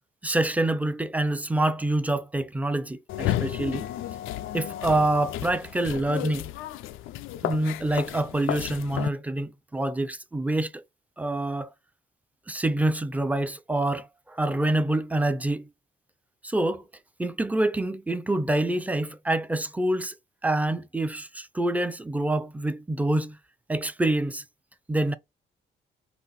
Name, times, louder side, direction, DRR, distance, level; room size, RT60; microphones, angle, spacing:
voice 1, 0.2-3.9 4.5-6.5 7.4-10.8 11.2-11.7 12.5-15.7 16.4-16.9 17.2-20.1 20.4-23.4 23.7-24.4 24.9-25.1, right 1 dB, 5° right, 0.5 m, -26 dB
sound 1, 3.1-9.1, left 13 dB, 85° left, 0.5 m, -32 dB
4.0 x 2.6 x 4.1 m
cardioid pair, 90°, 20 cm